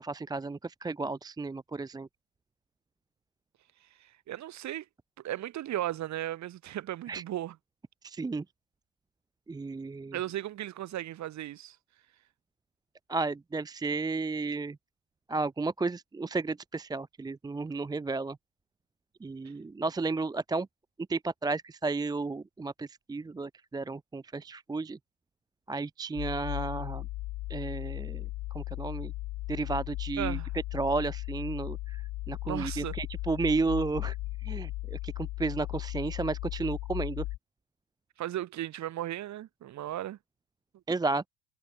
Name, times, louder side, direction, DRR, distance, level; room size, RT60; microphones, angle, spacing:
voice 1, 0.0-2.1 7.1-7.2 8.0-8.4 9.5-10.2 13.1-14.8 15.3-18.4 19.2-20.7 21.1-25.0 25.7-27.1 27.5-29.1 29.5-30.4 30.7-34.2 34.4-37.3 40.9-41.3, right 3 dB, 10° right, 1.0 m, -33 dB
voice 2, 4.0-4.8 5.2-7.5 10.1-11.8 30.2-30.5 32.4-32.9 38.2-40.2, right 13 dB, 35° right, 5.0 m, -36 dB
sound 1, 26.2-37.4, left 18 dB, 40° left, 4.5 m, -36 dB
figure-of-eight pair, 80°, 48 cm